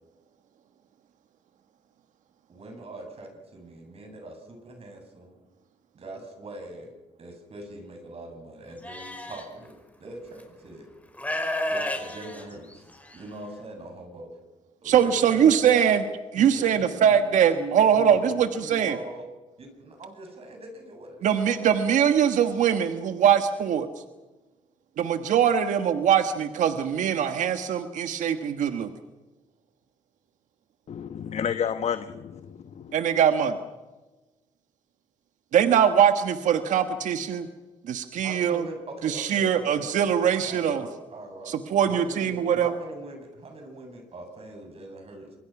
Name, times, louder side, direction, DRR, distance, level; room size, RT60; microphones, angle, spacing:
voice 1, 2.5-5.3 5.9-6.9 7.2-10.9 11.7-14.3 14.8-16.0 16.4-17.2 17.5-18.3 18.6-19.3 19.6-21.7 38.2-39.9 40.4-41.5 41.9-45.4, right 1 dB, 50° right, 3 dB, 8.0 m, -42 dB
Livestock farm animals working animals, 8.8-9.5 10.4-10.5 11.1-13.2, left 1 dB, 10° left, 5.9 m, -31 dB
voice 2, 14.8-16.0 16.3-19.0 21.2-23.9 25.0-28.9 32.9-33.6 35.5-37.5 37.9-38.6 39.0-40.8 41.5-42.7, right 8 dB, 75° right, 8 dB, 1.4 m, -22 dB
voice 3, 30.9-32.9, left 8 dB, 60° left, 10 dB, 1.2 m, -31 dB
26.5 x 22.5 x 6.0 m, 1.2 s
cardioid pair, 75°, 13 cm